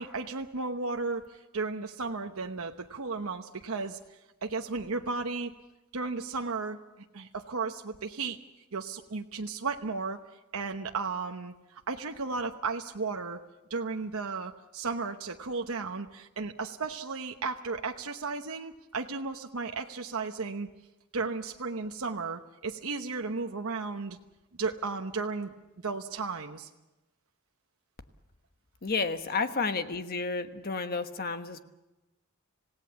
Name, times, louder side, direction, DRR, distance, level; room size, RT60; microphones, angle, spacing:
voice 1, 0.0-4.0 4.4-5.5 5.9-6.8 7.1-8.4 8.7-10.2 10.5-13.4 13.7-20.7 21.1-24.2 24.6-26.7, right 4 dB, 75° right, 4 dB, 1.0 m, -34 dB
voice 2, 28.8-31.6, left 4 dB, 45° left, 8 dB, 1.3 m, -31 dB
27.0 x 17.5 x 7.0 m, 1.0 s
head